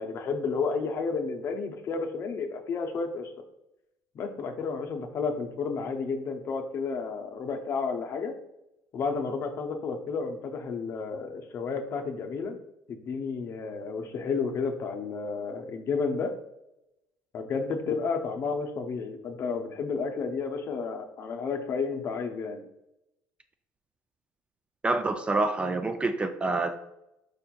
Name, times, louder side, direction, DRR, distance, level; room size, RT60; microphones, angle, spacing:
voice 1, 0.0-3.3 4.1-8.4 8.9-12.6 12.9-16.3 17.3-22.6, left 4 dB, 45° left, 5 dB, 0.6 m, -31 dB
voice 2, 24.8-26.8, right 2 dB, 20° right, 8 dB, 0.3 m, -27 dB
4.9 x 4.3 x 2.3 m, 0.87 s
cardioid pair, 110°, 6 cm